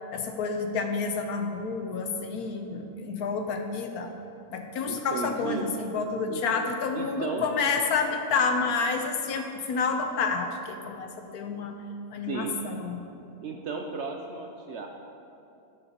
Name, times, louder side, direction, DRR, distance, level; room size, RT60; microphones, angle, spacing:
voice 1, 0.1-4.1 4.5-11.7 12.1-13.0, left 4 dB, 75° left, 5 dB, 1.2 m, -29 dB
voice 2, 4.9-5.7 6.3-6.4 6.9-7.5 12.3-12.6 13.4-14.9, right 4 dB, 65° right, 2 dB, 0.7 m, -34 dB
12.0 x 7.8 x 2.9 m, 2.6 s
omnidirectional pair, 1.6 m